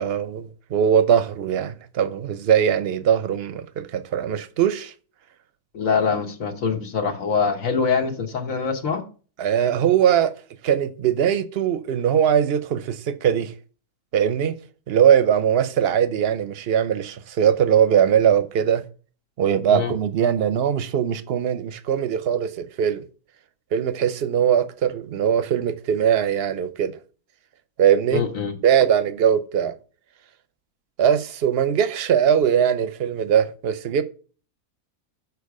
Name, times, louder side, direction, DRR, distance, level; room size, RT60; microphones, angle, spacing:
voice 1, 0.0-4.9 9.4-10.3 10.6-13.5 14.1-14.6 14.9-18.8 19.4-23.0 23.7-26.9 27.8-28.2 28.6-29.7 31.0-34.0, right 8 dB, 55° right, 0.8 m, -21 dB
voice 2, 5.7-9.0 19.7-19.9 28.1-28.6, left 5 dB, 65° left, 1.4 m, -24 dB
7.0 x 4.7 x 4.7 m
omnidirectional pair, 1.5 m